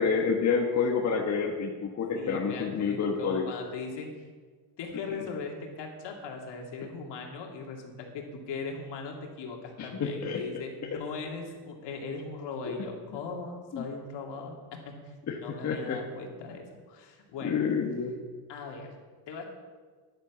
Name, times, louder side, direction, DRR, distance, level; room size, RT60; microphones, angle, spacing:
voice 1, 0.0-3.5 9.8-10.4 10.9-11.0 12.6-12.7 13.7-13.8 15.3-16.0 17.4-18.2, left 5 dB, 35° left, 1 dB, 1.4 m, -28 dB
voice 2, 2.1-4.2 4.8-15.1 15.4-17.6 18.5-19.0 19.3-19.4, left 4 dB, 55° left, 1 dB, 2.6 m, -39 dB
10.5 x 8.9 x 7.4 m, 1.5 s
cardioid pair, 110°, 50 cm